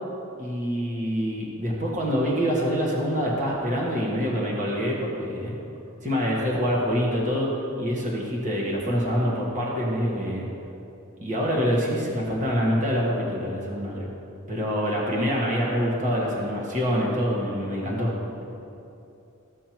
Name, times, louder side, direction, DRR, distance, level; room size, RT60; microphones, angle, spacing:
voice 1, 0.4-5.5 6.0-7.5 7.8-10.4 11.2-14.1 14.5-18.1, equal, 35° right, -4 dB, 1.4 m, -25 dB
15.0 x 6.4 x 3.0 m, 2.7 s
head